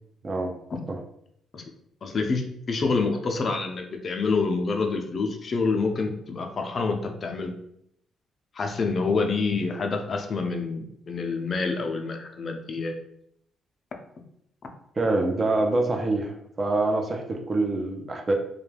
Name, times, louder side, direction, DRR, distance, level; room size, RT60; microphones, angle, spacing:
voice 1, 2.0-7.5 8.5-12.9, left 4 dB, 45° left, 4 dB, 0.4 m, -27 dB
voice 2, 15.0-18.3, right 2 dB, 35° right, 3 dB, 0.5 m, -25 dB
2.3 x 2.2 x 3.2 m, 0.73 s
cardioid pair, 90°, 0 cm